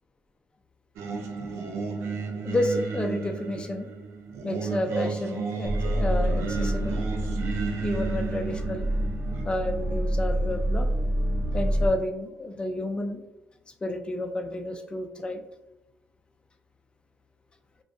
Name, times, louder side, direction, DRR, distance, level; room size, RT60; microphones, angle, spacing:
Singing, 1.0-9.4, right 4 dB, 90° right, 0.4 m, -33 dB
voice 1, 2.4-3.9 4.4-7.0 7.8-8.9 9.4-10.9 11.5-13.2 13.8-15.4, left 1 dB, 25° left, 5 dB, 0.3 m, -30 dB
sound 1, 5.6-11.9, right 1 dB, 45° right, 0.6 m, -27 dB
2.5 x 2.2 x 2.3 m, 0.95 s
cardioid pair, 90°, 4 cm